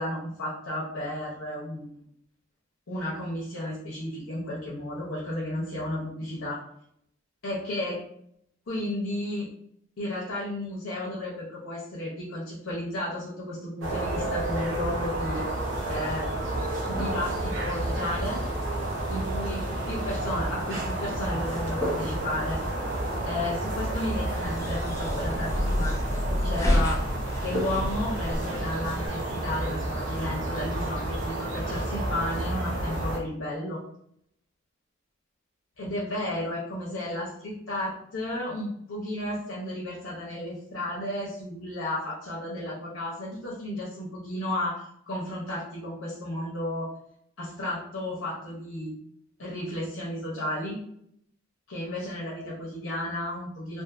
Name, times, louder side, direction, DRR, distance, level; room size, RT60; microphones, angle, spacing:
voice 1, 0.0-2.0 2.9-6.6 7.4-8.0 8.7-9.5 10.0-15.4 15.9-16.3 16.9-18.4 19.1-22.6 23.2-26.0 26.2-27.0 27.4-33.8 35.8-46.9 47.4-48.9 49.4-50.8 51.7-53.8, left 1 dB, 75° left, -6 dB, 0.7 m, -33 dB
sound 1, 13.8-33.2, right 1 dB, 70° right, 0.7 m, -31 dB
sound 2, 16.9-31.3, equal, 20° right, 1.0 m, -41 dB
sound 3, 24.1-29.1, left 1 dB, 15° left, 0.4 m, -29 dB
2.6 x 2.5 x 2.4 m, 0.71 s
head